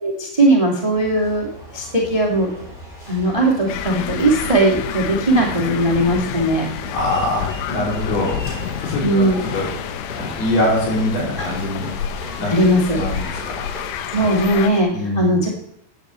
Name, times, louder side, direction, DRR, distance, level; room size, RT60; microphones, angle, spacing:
voice 1, 0.0-2.5 3.1-6.7 9.0-9.4 12.5-13.0 14.1-15.5, right 1 dB, 20° right, -1 dB, 1.0 m, -18 dB
sound 1, 0.9-14.8, equal, 15° left, 2.4 m, -37 dB
sound 2, 3.7-14.7, left 10 dB, 80° left, 2.9 m, -29 dB
voice 2, 6.9-8.5 8.8-9.7 10.1-11.9 12.4-12.5 12.9-13.7 14.9-15.3, left 1 dB, 55° left, -4 dB, 6.7 m, -23 dB
9.5 x 8.9 x 8.3 m, 0.73 s
omnidirectional pair, 5.6 m